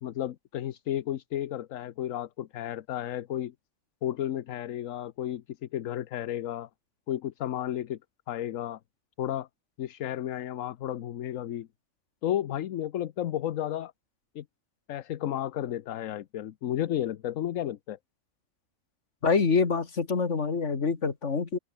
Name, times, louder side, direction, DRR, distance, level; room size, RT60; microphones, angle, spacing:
voice 1, 0.0-3.5 4.0-6.7 7.1-8.0 8.3-8.8 9.2-9.5 9.8-11.7 12.2-13.9 14.3-14.4 14.9-18.0, left 11 dB, 80° left, 1.1 m, -32 dB
voice 2, 19.2-21.6, left 5 dB, 60° left, 2.3 m, -26 dB
open air
omnidirectional pair, 1.4 m